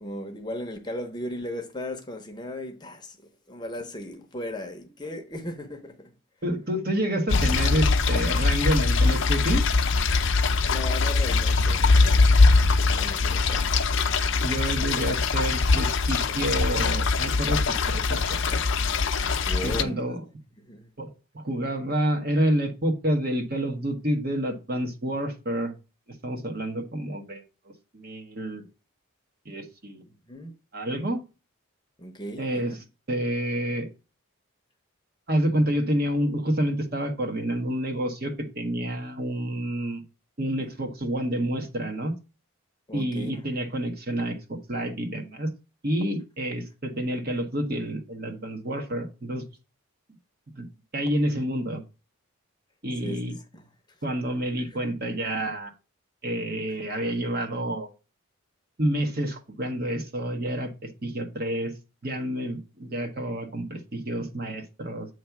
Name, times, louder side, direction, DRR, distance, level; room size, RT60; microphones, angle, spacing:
voice 1, 0.0-3.2 3.5-6.1 10.7-12.3 12.9-13.9 19.5-20.0 20.6-20.9 30.1-30.5 32.0-32.8 40.6-40.7 42.9-43.4 47.7-47.8 53.0-53.7 54.6-54.8, left 1 dB, 20° left, 0.8 m, -37 dB
voice 2, 6.4-9.6 14.4-17.6 17.9-18.6 19.6-20.2 21.0-21.1 21.3-25.7 26.2-27.4 27.9-28.6 29.4-30.0 30.7-31.2 32.4-32.7 33.1-33.9 35.3-40.0 40.4-42.1 42.9-45.5 45.8-49.4 50.5-50.7 50.9-51.8 52.8-53.3 54.0-55.7 56.2-57.9 58.8-60.7 61.0-61.7 62.0-65.1, right 1 dB, 45° right, 1.2 m, -28 dB
sound 1, 7.3-19.8, left 3 dB, 60° left, 0.6 m, -22 dB
8.0 x 3.2 x 5.8 m
head